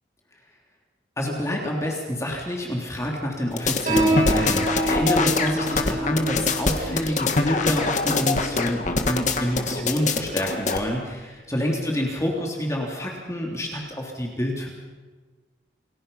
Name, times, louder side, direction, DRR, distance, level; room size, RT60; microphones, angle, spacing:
voice 1, 1.2-14.7, equal, 15° left, -1 dB, 3.4 m, -27 dB
sound 1, 3.6-10.8, left 3 dB, 45° left, 1.9 m, -24 dB
Piano, 3.9-10.9, right 1 dB, 45° right, 6.2 m, -28 dB
29.5 x 20.5 x 5.8 m, 1.3 s
head